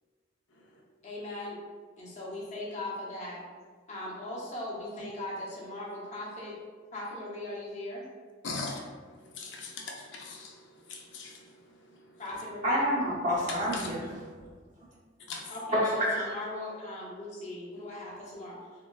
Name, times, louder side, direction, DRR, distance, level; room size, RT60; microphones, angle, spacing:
voice 1, 1.0-1.6 2.0-3.4 3.9-6.6 6.9-8.0 12.2-12.9 15.5-18.6, left 1 dB, 35° left, -5 dB, 0.7 m, -39 dB
voice 2, 8.4-8.8 9.4-10.5 10.9-11.4 13.7-13.9 15.3-15.5, left 3 dB, 75° left, -1 dB, 0.5 m, -39 dB
voice 3, 12.6-14.3 15.7-16.3, equal, 40° right, -6 dB, 0.6 m, -28 dB
3.6 x 2.1 x 2.2 m, 1.5 s
head